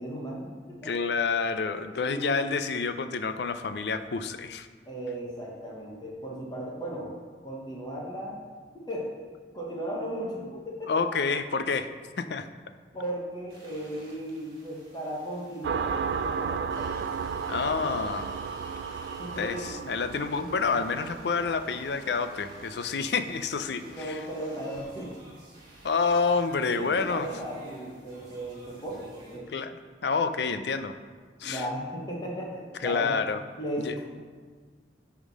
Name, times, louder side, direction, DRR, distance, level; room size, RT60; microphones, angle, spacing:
voice 1, 0.0-0.9 2.1-2.6 4.9-7.1 7.4-8.4 8.7-9.1 9.5-11.0 12.9-17.1 19.2-19.9 20.4-20.5 23.8-25.1 26.6-29.5 31.4-33.1 33.6-34.2, right 1 dB, 25° left, -3 dB, 1.2 m, -36 dB
voice 2, 0.8-4.7 10.9-11.9 12.2-12.5 17.5-18.3 19.4-24.2 25.8-27.3 29.5-29.8 30.0-30.9 31.4-31.7 32.8-33.4 33.8-33.9, left 5 dB, 70° left, 10 dB, 0.5 m, -28 dB
sound 1, 13.5-29.4, right 1 dB, 30° right, 2.0 m, -52 dB
sound 2, 15.6-24.9, right 6 dB, 70° right, 0.3 m, -35 dB
10.0 x 3.7 x 6.1 m, 1.5 s
head